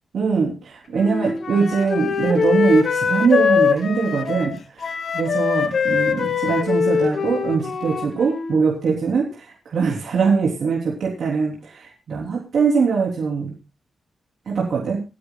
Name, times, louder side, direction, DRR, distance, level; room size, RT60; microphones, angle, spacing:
voice 1, 0.1-13.6 14.5-15.0, right 5 dB, 75° right, -4 dB, 3.6 m, -22 dB
Wind instrument woodwind instrument, 0.9-8.7, left 6 dB, 60° left, 1.4 m, -22 dB
27.5 x 10.5 x 2.4 m, 0.30 s
wide cardioid pair, 145°, 0 cm